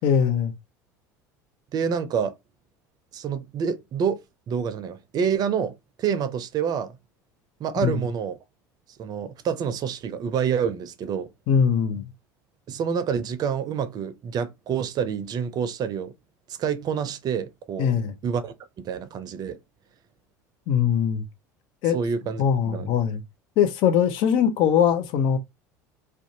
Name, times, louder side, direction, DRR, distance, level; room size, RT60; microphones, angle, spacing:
voice 1, 0.0-0.5 7.8-8.0 11.5-12.1 17.8-18.1 20.7-21.2 21.8-22.0 22.4-23.2 23.6-25.4, left 8 dB, 60° left, 0.6 m, -21 dB
voice 2, 1.7-2.3 3.1-6.9 7.6-8.4 9.0-11.3 12.7-16.1 16.6-17.9 18.2-18.5 18.8-19.6 21.9-23.0, right 7 dB, 45° right, 0.5 m, -27 dB
2.5 x 2.2 x 2.7 m
hypercardioid pair, 75°, 10 cm